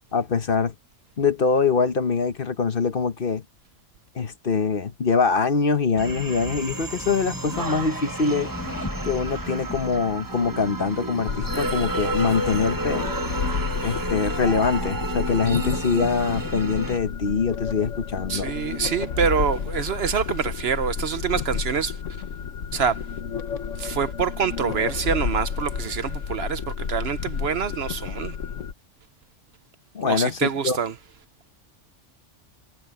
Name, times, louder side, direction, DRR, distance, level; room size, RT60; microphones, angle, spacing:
voice 1, 0.1-0.7 1.2-3.4 4.1-8.5 9.0-13.0 13.8-18.5 29.9-30.8, left 5 dB, 50° left, 1.2 m, -24 dB
sound 1, 6.0-17.0, right 2 dB, 15° right, 1.2 m, -31 dB
sound 2, 6.4-10.9, left 2 dB, 15° left, 1.1 m, -38 dB
sound 3, 11.3-28.7, left 6 dB, 75° left, 1.4 m, -31 dB
voice 2, 18.3-22.0 22.7-23.0 23.8-28.4 30.1-30.9, right 7 dB, 60° right, 0.9 m, -26 dB
omnidirectional pair, 1.3 m